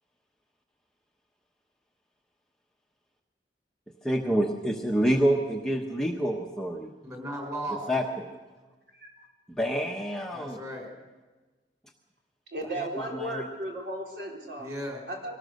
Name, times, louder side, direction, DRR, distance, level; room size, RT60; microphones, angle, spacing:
voice 1, 4.0-6.9 7.9-8.2 9.5-10.6 12.8-13.5, equal, 5° left, 0 dB, 1.1 m, -27 dB
voice 2, 7.0-8.0 10.3-10.9 14.6-15.0, right 1 dB, 20° right, 3 dB, 4.7 m, -36 dB
voice 3, 12.5-14.7 15.1-15.4, right 1 dB, 60° right, 0 dB, 4.0 m, -35 dB
24.0 x 18.5 x 6.6 m, 1.2 s
head